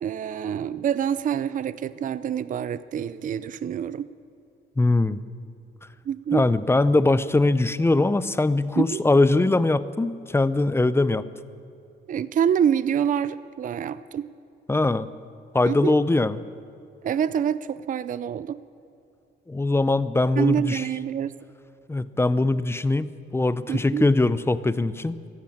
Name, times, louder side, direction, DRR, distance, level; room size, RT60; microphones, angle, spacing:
voice 1, 0.0-4.1 6.1-6.5 8.8-9.0 12.1-14.3 15.6-16.0 17.0-18.6 20.4-21.4 23.7-24.1, right 8 dB, 40° right, 15 dB, 0.5 m, -26 dB
voice 2, 4.8-5.2 6.3-11.2 14.7-15.1 15.5-16.4 19.5-20.8 21.9-23.1 23.3-25.2, left 2 dB, 10° left, 15 dB, 0.6 m, -21 dB
15.0 x 10.5 x 8.6 m, 2.6 s
cardioid pair, 90°, 20 cm